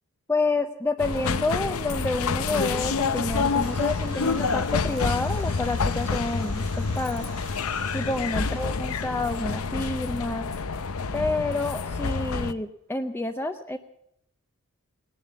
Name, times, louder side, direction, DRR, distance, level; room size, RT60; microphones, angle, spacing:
voice 1, 0.3-7.3 7.9-10.5 11.1-13.8, left 2 dB, 10° left, 7 dB, 0.6 m, -29 dB
sound 1, 1.0-12.5, left 4 dB, 70° left, 0.7 m, -28 dB
sound 2, 3.2-11.7, right 7 dB, 70° right, 2.1 m, -50 dB
19.0 x 11.0 x 7.0 m, 0.76 s
head